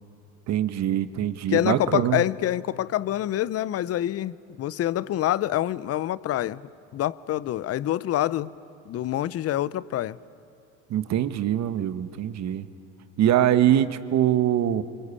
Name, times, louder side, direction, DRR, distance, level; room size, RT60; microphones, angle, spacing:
voice 1, 0.5-2.2 10.9-12.7 13.2-14.8, right 11 dB, 50° right, 12 dB, 1.3 m, -23 dB
voice 2, 1.5-6.6 6.9-8.6 8.9-10.2, left 13 dB, 45° left, 20 dB, 0.8 m, -26 dB
27.5 x 25.0 x 8.5 m, 2.6 s
supercardioid pair, 85°, 34 cm